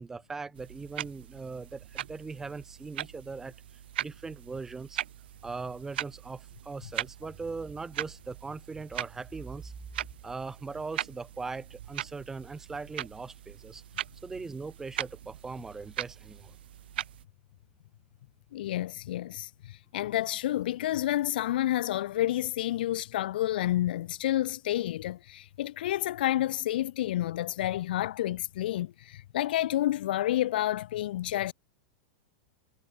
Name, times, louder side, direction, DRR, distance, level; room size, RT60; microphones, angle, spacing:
voice 1, 0.0-3.6 4.0-5.0 5.4-9.8 10.2-13.8 14.2-16.6, right 4 dB, 10° right, 0.7 m, -40 dB
sound 1, 0.5-17.3, right 12 dB, 85° right, 0.7 m, -40 dB
voice 2, 18.5-31.5, left 14 dB, 70° left, 0.7 m, -29 dB
supercardioid pair, 170°, 5 cm